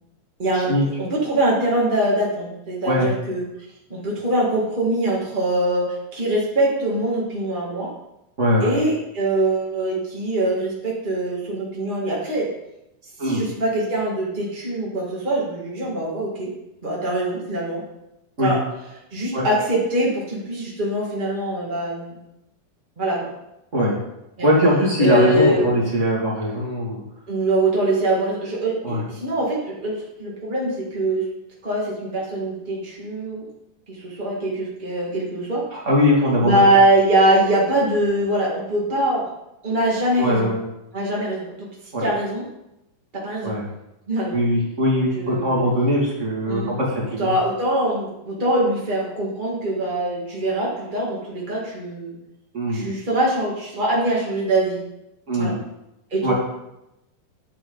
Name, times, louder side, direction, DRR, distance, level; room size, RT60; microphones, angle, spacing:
voice 1, 0.4-0.7 1.0-3.4 3.9-7.9 8.6-12.5 13.2-16.5 16.8-17.8 18.4-18.6 19.1-22.2 23.0-23.3 24.4-24.5 25.0-25.7 27.3-31.2 31.6-33.4 33.9-35.6 36.4-39.3 39.6-40.5 40.9-41.7 42.0-42.4 43.1-43.6 44.1-44.4 45.1-45.7 46.5-46.8 47.2-52.2 52.7-54.8 55.4-55.5 56.1-56.3, right 1 dB, 55° right, -5 dB, 0.5 m, -23 dB
voice 2, 8.4-8.7 13.2-13.4 18.4-18.5 19.3-19.4 23.7-23.9 24.4-27.0 28.8-29.0 35.7-36.7 40.2-40.6 41.9-42.0 43.4-43.6 44.3-47.3 52.5-52.8 55.3-55.5 56.2-56.3, equal, 25° right, -4 dB, 1.7 m, -20 dB
10.0 x 8.2 x 3.9 m, 0.88 s
omnidirectional pair, 4.7 m